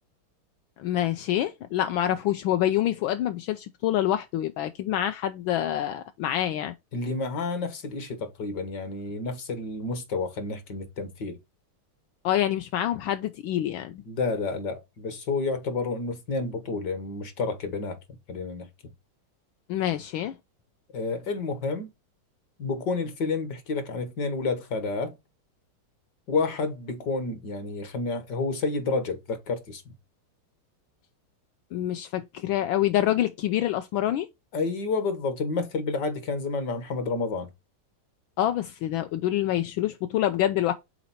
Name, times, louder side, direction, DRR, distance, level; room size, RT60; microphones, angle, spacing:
voice 1, 0.8-6.7 12.2-14.0 19.7-20.3 31.7-34.3 38.4-40.7, left 12 dB, 75° left, 1.3 m, -26 dB
voice 2, 6.9-11.4 14.1-18.0 18.3-18.7 20.9-21.9 22.6-25.1 26.3-29.8 34.5-37.5, left 3 dB, 60° left, 1.7 m, -30 dB
5.7 x 4.2 x 4.1 m
omnidirectional pair, 2.2 m